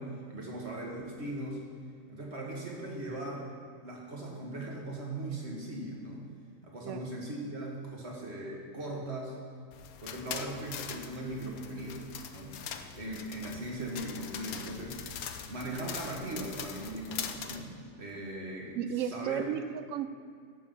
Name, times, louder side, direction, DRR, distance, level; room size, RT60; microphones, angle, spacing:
voice 1, 0.0-1.6 2.1-3.5 3.8-6.2 6.6-9.4 10.0-12.6 12.9-15.0 15.5-19.5, right 1 dB, 45° right, -1 dB, 1.9 m, -39 dB
sound 1, 9.7-17.6, left 8 dB, 75° left, 1.1 m, -42 dB
voice 2, 18.7-20.1, right 9 dB, 65° right, 11 dB, 0.8 m, -33 dB
11.5 x 7.4 x 5.5 m, 2.3 s
omnidirectional pair, 1.6 m